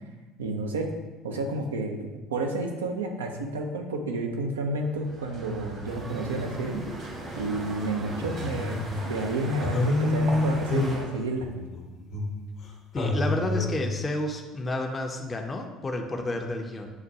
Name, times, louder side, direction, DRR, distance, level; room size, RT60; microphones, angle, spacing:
voice 1, 0.4-0.9 1.2-6.9 7.4-11.5, right 2 dB, 85° right, 3 dB, 0.4 m, -30 dB
sound 1, 4.8-11.0, right 2 dB, 55° right, 1.2 m, -40 dB
sound 2, 5.8-11.0, right 1 dB, 30° right, 0.7 m, -42 dB
sound 3, 7.8-9.2 9.6-12.7 13.0-13.9, left 2 dB, 60° left, 0.7 m, -28 dB
voice 2, 12.9-16.9, left 2 dB, 25° left, 3 dB, 0.5 m, -30 dB
6.3 x 2.2 x 2.7 m, 1.2 s
hypercardioid pair, 65°, 0 cm